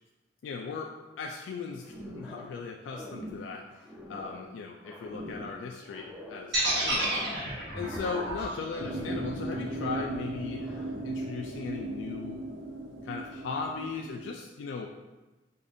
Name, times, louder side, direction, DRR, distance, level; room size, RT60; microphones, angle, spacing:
voice 1, 0.4-0.9 1.2-3.6 4.1-7.1 7.7-12.4 13.0-14.9, left 5 dB, 75° left, 1 dB, 0.3 m, -37 dB
sound 1, 1.9-2.6 2.8-4.5 4.8-6.5 6.8-8.4 8.7-10.3 10.6-11.2, left 1 dB, 10° right, 0.5 m, -44 dB
sound 2, 6.5-10.6, right 1 dB, 60° right, 1.2 m, -31 dB
sound 3, 8.8-14.3, right 2 dB, 80° right, 0.5 m, -37 dB
4.9 x 2.5 x 2.6 m, 1.1 s
head